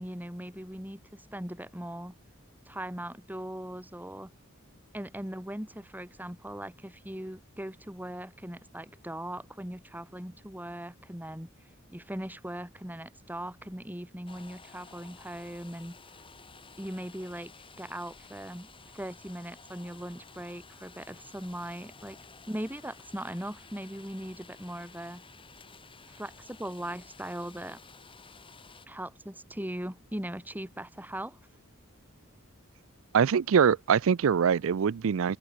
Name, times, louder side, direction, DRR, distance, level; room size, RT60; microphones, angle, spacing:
voice 1, 0.0-2.2 2.7-4.3 4.9-11.5 11.9-16.0 16.8-17.5 17.8-18.7 18.9-22.2 22.5-25.2 26.1-27.8 28.9-31.4, right 1 dB, 10° right, 3.4 m, -39 dB
sound 1, 14.3-28.9, left 4 dB, 25° left, 4.7 m, -53 dB
voice 2, 33.1-35.4, right 7 dB, 70° right, 0.4 m, -23 dB
open air
head